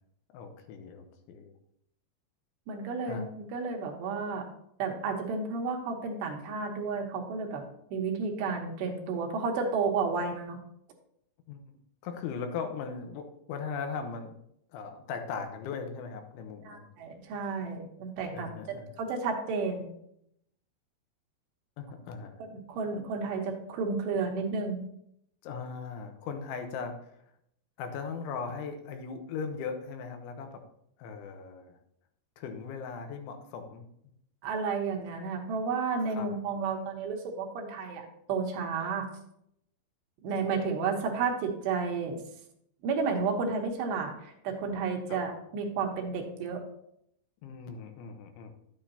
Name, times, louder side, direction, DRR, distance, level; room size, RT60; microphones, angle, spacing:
voice 1, 0.3-1.5 3.0-3.2 11.5-11.6 12.0-14.3 14.7-16.9 18.3-18.9 21.8-22.4 25.4-27.2 27.8-30.7 31.0-31.8 32.4-33.9 36.1-36.3 45.1-45.2 47.4-48.5, left 5 dB, 90° left, 6 dB, 3.5 m, -38 dB
voice 2, 2.7-4.4 4.8-10.6 16.6-19.9 22.5-24.8 34.4-39.1 40.2-42.2 42.8-46.6, right 4 dB, 75° right, 1 dB, 3.3 m, -32 dB
11.5 x 8.9 x 2.9 m, 0.73 s
omnidirectional pair, 5.2 m